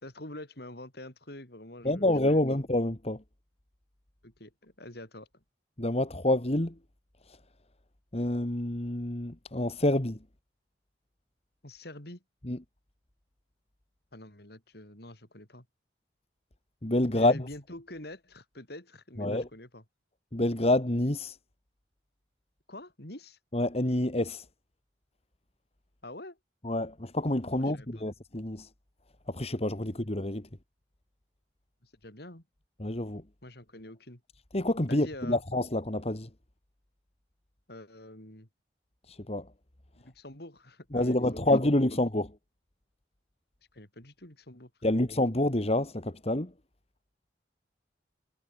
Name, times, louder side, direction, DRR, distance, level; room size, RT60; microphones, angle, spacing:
voice 1, 0.0-2.6 4.2-5.4 11.6-12.2 14.1-15.6 17.1-19.8 22.7-23.4 26.0-26.4 27.6-28.0 31.8-32.4 33.4-34.2 34.9-35.4 37.7-38.5 40.0-41.4 43.7-45.1, left 1 dB, 60° left, 5.0 m, -46 dB
voice 2, 1.8-3.2 5.8-6.8 7.3-7.4 8.1-10.2 12.4-12.6 16.8-17.5 19.2-19.5 20.3-21.4 23.5-24.5 26.6-28.7 29.3-30.5 32.8-33.2 34.5-36.3 39.1-39.5 40.9-42.3 44.8-46.5, left 1 dB, 35° left, 1.8 m, -27 dB
head